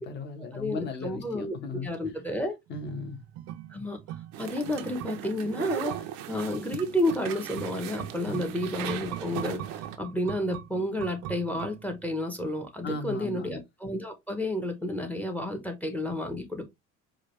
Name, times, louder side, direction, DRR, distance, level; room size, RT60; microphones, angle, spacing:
voice 1, 0.0-1.9 2.7-3.2 8.3-8.4 12.8-13.5, left 4 dB, 30° left, 1.0 m, -36 dB
voice 2, 0.5-1.6 1.8-2.5 3.7-4.0 4.4-16.7, left 1 dB, 5° left, 0.7 m, -31 dB
sound 1, 2.7-12.2 12.5-12.6, right 11 dB, 55° right, 0.5 m, -42 dB
sound 2, 4.3-10.0, right 11 dB, 90° right, 0.7 m, -38 dB
4.8 x 2.3 x 3.1 m
cardioid pair, 135°, 32 cm